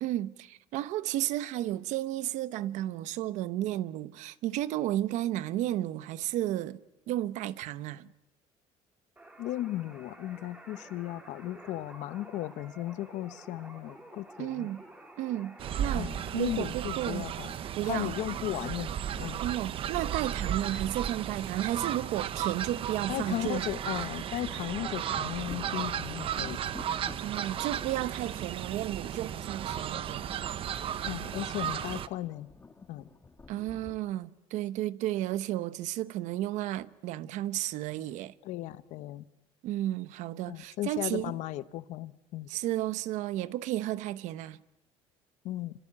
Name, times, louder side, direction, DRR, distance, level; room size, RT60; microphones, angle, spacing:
voice 1, 0.0-6.8 7.1-8.1 14.4-14.8 15.2-17.3 17.8-18.1 19.4-23.7 27.2-30.6 33.5-38.3 39.6-41.3 42.5-44.6, right 14 dB, 80° right, 1.0 m, -33 dB
sound 1, 9.2-16.3, right 1 dB, 10° right, 4.5 m, -51 dB
voice 2, 9.4-14.7 15.9-17.5 17.8-18.9 19.1-19.4 23.1-26.6 31.0-32.5 32.9-33.0 38.4-39.3 40.5-42.5 45.4-45.7, left 14 dB, 75° left, 1.1 m, -36 dB
Fowl, 15.6-32.1, right 9 dB, 45° right, 1.0 m, -35 dB
sound 2, 25.1-34.0, left 3 dB, 20° left, 2.0 m, -51 dB
26.0 x 26.0 x 8.9 m
cardioid pair, 145°, 12 cm